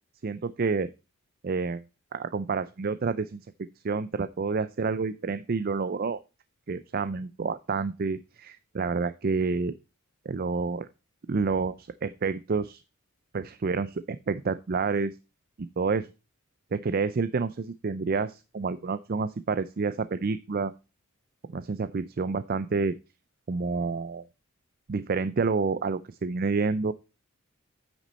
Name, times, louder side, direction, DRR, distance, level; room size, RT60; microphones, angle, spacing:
voice 1, 0.2-0.9 1.4-1.8 2.1-3.4 3.8-6.2 6.7-9.7 10.3-10.9 11.3-12.8 13.3-15.2 15.6-16.1 16.7-20.7 21.5-22.9 23.5-24.2 24.9-26.9, right 4 dB, 40° right, 14 dB, 0.4 m, -29 dB
9.6 x 6.1 x 4.1 m, 0.29 s
head